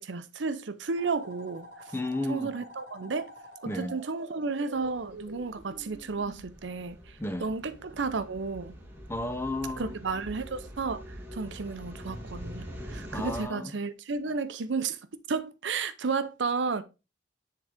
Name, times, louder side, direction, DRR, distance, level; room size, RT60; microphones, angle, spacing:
voice 1, 0.0-1.7 2.3-3.3 3.7-7.0 7.4-8.7 9.8-11.0 11.3-15.0 15.3-16.8, right 4 dB, 75° right, 0.7 m, -32 dB
sound 1, 1.0-6.4, right 1 dB, 55° right, 1.4 m, -47 dB
voice 2, 1.9-2.6 3.7-3.9 7.2-7.5 9.1-9.9 13.1-13.7, left 2 dB, 15° left, 0.7 m, -32 dB
sound 2, 4.7-13.4, equal, 10° right, 1.5 m, -44 dB
10.0 x 3.9 x 3.5 m
head